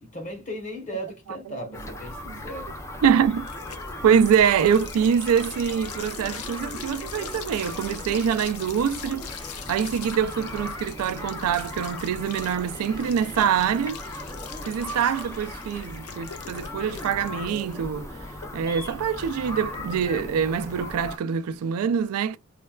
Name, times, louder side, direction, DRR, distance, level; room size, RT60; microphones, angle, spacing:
voice 1, 0.0-2.7, equal, 35° left, 1.0 m, -36 dB
sound 1, 1.7-21.2, left 1 dB, 15° left, 0.4 m, -38 dB
sound 2, 2.7-21.5, left 8 dB, 85° left, 0.5 m, -43 dB
voice 2, 3.0-3.5 4.0-9.3 9.7-14.0 14.7-18.1 18.5-22.4, right 7 dB, 85° right, 0.3 m, -24 dB
3.2 x 2.2 x 2.2 m
head